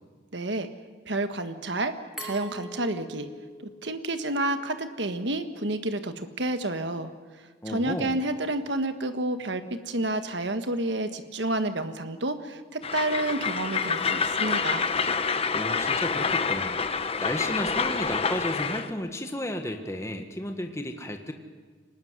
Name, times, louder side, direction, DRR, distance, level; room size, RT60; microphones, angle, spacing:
voice 1, 0.3-0.7 1.1-3.3 3.6-7.1 7.7-14.9, right 2 dB, 65° right, 8 dB, 1.5 m, -30 dB
Glass, 2.2-5.0, equal, ahead, 3.7 m, -43 dB
voice 2, 7.6-8.2 15.5-16.8 17.2-21.3, left 1 dB, 15° left, 5 dB, 1.6 m, -33 dB
Train, 12.8-18.9, left 5 dB, 30° left, 1.0 m, -27 dB
24.5 x 20.0 x 9.6 m, 1.4 s
head